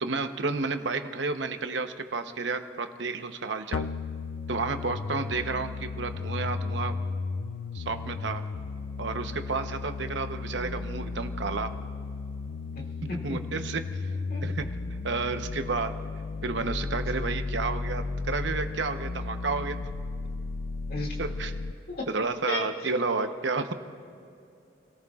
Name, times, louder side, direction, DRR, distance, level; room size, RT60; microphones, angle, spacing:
voice 1, 0.0-3.9 4.5-6.9 7.7-8.4 9.0-11.8 13.2-13.8 14.4-14.7 15.0-16.0 16.4-19.8 21.2-21.5 22.1-23.7, right 4 dB, 75° right, 7 dB, 0.9 m, -31 dB
sound 1, 3.7-21.7, left 3 dB, 85° left, 0.5 m, -34 dB
voice 2, 12.8-13.4 14.3-14.4 20.9-21.2 21.9-22.1 22.5-22.6, left 1 dB, 50° left, -1 dB, 2.3 m, -34 dB
29.5 x 18.5 x 2.4 m, 2.6 s
head